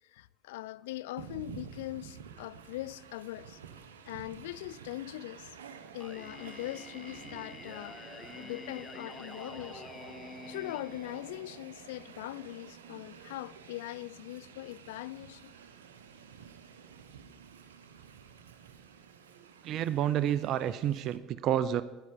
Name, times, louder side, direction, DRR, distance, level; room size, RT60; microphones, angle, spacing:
voice 1, 0.0-3.6 4.0-5.6 5.9-8.0 8.3-9.9 10.2-15.6, left 16 dB, 75° left, 0.3 m, -41 dB
Train, 1.2-21.2, right 7 dB, 85° right, 0.8 m, -50 dB
Singing, 6.0-11.9, left 4 dB, 25° left, 0.5 m, -48 dB
voice 2, 19.6-21.8, right 10 dB, 55° right, 0.5 m, -29 dB
10.5 x 10.0 x 5.2 m
hypercardioid pair, 70°, 0 cm